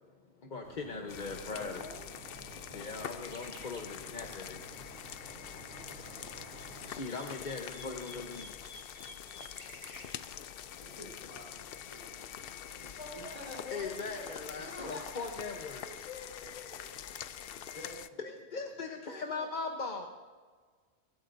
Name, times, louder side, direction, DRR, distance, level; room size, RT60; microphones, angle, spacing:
voice 1, 0.5-1.9 2.7-4.6 6.9-8.5 9.9-10.2 13.7-15.9 18.2-20.1, left 4 dB, 45° left, 2 dB, 1.0 m, -40 dB
sound 1, 0.6-7.0, right 2 dB, 75° right, 1.7 m, -52 dB
sound 2, 1.1-18.1, left 9 dB, 65° left, 0.7 m, -45 dB
voice 2, 1.5-2.0 5.8-6.2 12.9-15.0 15.8-17.2 19.1-20.1, left 3 dB, 80° left, -3 dB, 2.7 m, -49 dB
sound 3, 3.1-3.9 6.3-10.1, equal, 35° right, 1.8 m, -52 dB
voice 3, 10.8-13.6 14.6-15.3 17.7-18.2 18.5-18.7, left 1 dB, 30° left, -2 dB, 3.7 m, -49 dB
24.0 x 13.0 x 2.7 m, 1.5 s
omnidirectional pair, 1.2 m